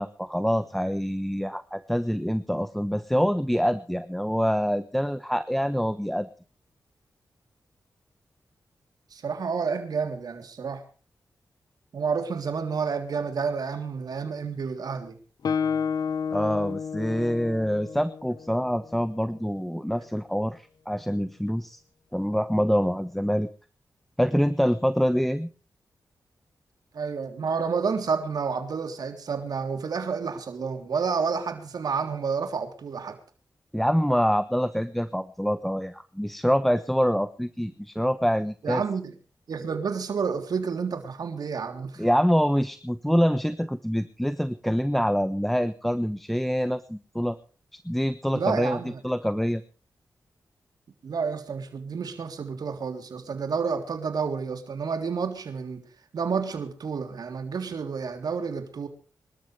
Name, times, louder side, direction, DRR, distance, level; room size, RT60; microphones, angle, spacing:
voice 1, 0.0-6.3 16.3-21.8 22.1-23.5 24.2-25.5 33.7-38.8 42.0-47.4 47.7-49.6, equal, 5° left, 1.1 m, -25 dB
voice 2, 9.1-10.8 11.9-15.2 26.9-33.2 38.6-39.1 39.5-42.1 48.3-49.0 51.0-55.8 56.1-58.9, right 5 dB, 75° right, 3.4 m, -30 dB
Guitar, 15.4-19.1, left 6 dB, 75° left, 0.9 m, -31 dB
25.5 x 13.5 x 3.4 m
cardioid pair, 65°, 7 cm